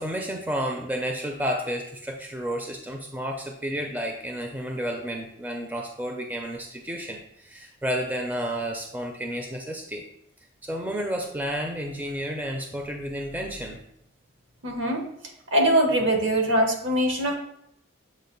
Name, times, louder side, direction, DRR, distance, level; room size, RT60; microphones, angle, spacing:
voice 1, 0.0-10.0 10.6-13.8, equal, 10° right, 2 dB, 0.4 m, -31 dB
voice 2, 14.6-15.0 15.5-17.3, right 1 dB, 70° right, 2 dB, 1.1 m, -22 dB
7.3 x 2.5 x 5.2 m, 0.75 s
head